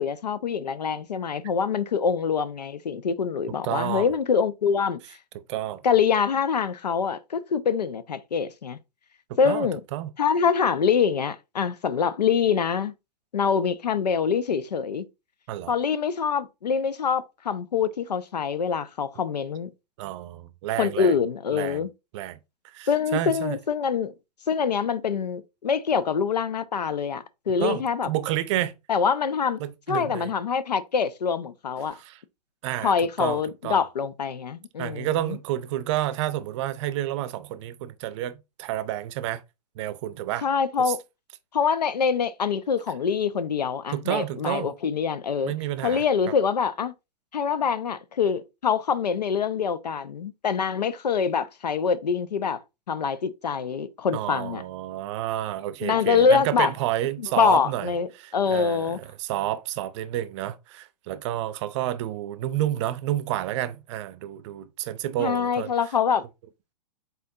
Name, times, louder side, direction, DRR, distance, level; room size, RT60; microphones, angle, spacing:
voice 1, 0.0-5.0 5.8-8.8 9.4-9.8 10.2-12.9 13.3-15.1 15.7-19.7 20.8-21.9 22.9-24.1 24.5-28.1 28.9-29.6 29.9-32.0 32.8-35.4 40.4-41.0 41.5-45.5 45.8-46.9 47.3-52.6 52.9-54.6 55.8-56.7 57.4-59.0 65.2-66.3, left 6 dB, 85° left, 0.5 m, -25 dB
voice 2, 3.6-4.1 5.3-5.8 9.3-10.1 15.5-15.7 20.0-21.2 21.5-21.8 22.1-22.4 22.6-23.6 27.6-28.7 29.6-30.3 31.9-32.2 32.6-32.9 33.2-33.8 34.8-39.4 39.8-40.5 40.8-40.9 43.9-44.7 45.5-46.0 54.1-65.7, right 13 dB, 45° right, 0.5 m, -30 dB
4.2 x 3.9 x 2.7 m
hypercardioid pair, 110°, 20 cm